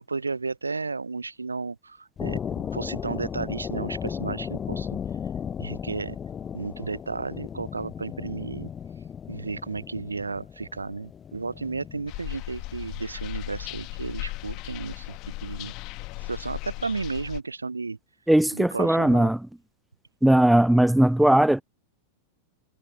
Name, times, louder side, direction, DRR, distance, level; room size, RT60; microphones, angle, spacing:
voice 1, 0.1-5.0 5.6-6.2 6.5-8.7 9.3-15.7 16.2-18.0 18.5-19.3, right 4 dB, 80° right, 0.8 m, -33 dB
sound 1, 2.2-12.1, left 8 dB, 20° left, 0.8 m, -35 dB
sound 2, 12.1-17.4, left 22 dB, 40° left, 1.5 m, -37 dB
voice 2, 18.3-19.4 20.2-21.6, right 1 dB, 5° right, 0.5 m, -19 dB
figure-of-eight pair, 90°, 0 cm